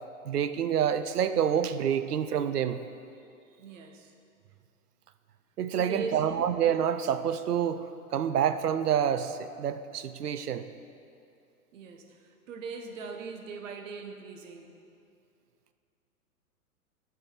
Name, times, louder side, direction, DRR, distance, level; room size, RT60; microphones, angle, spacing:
voice 1, 0.3-2.8 5.6-10.7, right 9 dB, 85° right, 11 dB, 0.5 m, -28 dB
voice 2, 3.6-4.1 5.7-6.2 11.7-12.1 12.5-14.7, right 5 dB, 55° right, 5 dB, 1.0 m, -40 dB
8.9 x 4.7 x 5.5 m, 2.5 s
figure-of-eight pair, 115°, 45 cm